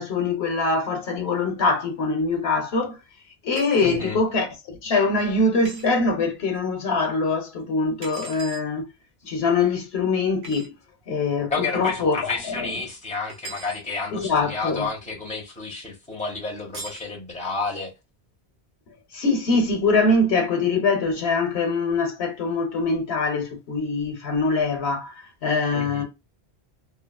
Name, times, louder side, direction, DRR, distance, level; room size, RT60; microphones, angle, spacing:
voice 1, 0.0-3.0 3.4-4.5 4.8-8.9 9.2-10.7 11.1-12.7 14.1-14.9 19.1-26.0, left 3 dB, 75° left, 1.0 m, -23 dB
sound 1, 3.5-4.0 5.6-5.9 8.0-8.7 10.4-10.7 13.3-13.8 16.7-17.1, right 3 dB, 80° right, 1.1 m, -39 dB
voice 2, 3.8-4.2 11.5-17.9 25.7-26.0, left 3 dB, 5° left, 0.9 m, -30 dB
2.9 x 2.3 x 2.2 m
omnidirectional pair, 1.1 m